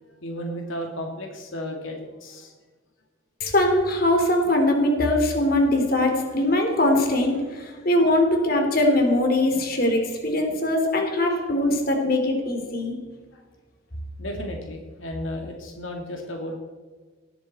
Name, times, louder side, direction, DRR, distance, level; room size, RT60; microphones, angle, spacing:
voice 1, 0.2-2.5 13.3-13.4 14.2-16.6, equal, 85° left, 2 dB, 2.4 m, -34 dB
voice 2, 3.4-12.9, left 1 dB, 50° left, 3 dB, 3.2 m, -21 dB
19.0 x 13.0 x 4.3 m, 1.4 s
head